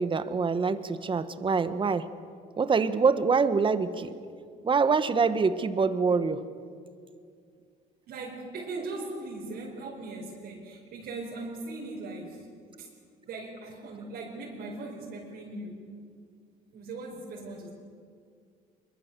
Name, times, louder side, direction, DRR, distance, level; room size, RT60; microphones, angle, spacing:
voice 1, 0.0-2.1 2.6-4.1 4.6-6.5, right 5 dB, 30° right, 12 dB, 1.3 m, -25 dB
voice 2, 8.1-12.5 12.8-12.9 13.2-15.8 16.7-17.7, right 2 dB, 75° right, -3 dB, 4.8 m, -39 dB
25.0 x 23.0 x 6.9 m, 2.2 s
cardioid pair, 110°, 17 cm